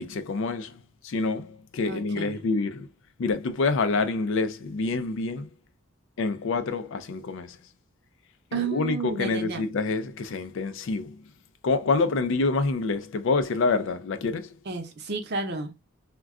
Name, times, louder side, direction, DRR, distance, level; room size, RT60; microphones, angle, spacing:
voice 1, 0.0-2.9 3.2-5.5 6.2-7.6 8.5-11.2 11.6-14.6, left 3 dB, 60° left, 0.4 m, -27 dB
voice 2, 1.8-2.4 8.5-9.6 14.7-15.7, right 4 dB, 50° right, 0.7 m, -32 dB
2.3 x 2.2 x 3.6 m
head